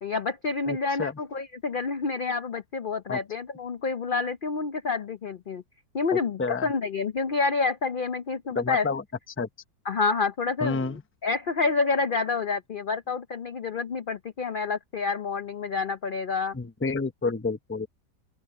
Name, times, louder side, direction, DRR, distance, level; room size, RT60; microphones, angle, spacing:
voice 1, 0.0-5.6 5.9-8.9 9.9-16.6, left 4 dB, 65° left, 0.5 m, -28 dB
voice 2, 0.7-1.2 3.1-3.2 6.1-6.7 8.5-9.0 9.4-9.5 10.6-11.0 16.5-17.9, left 4 dB, 15° left, 0.5 m, -29 dB
open air
omnidirectional pair, 1.9 m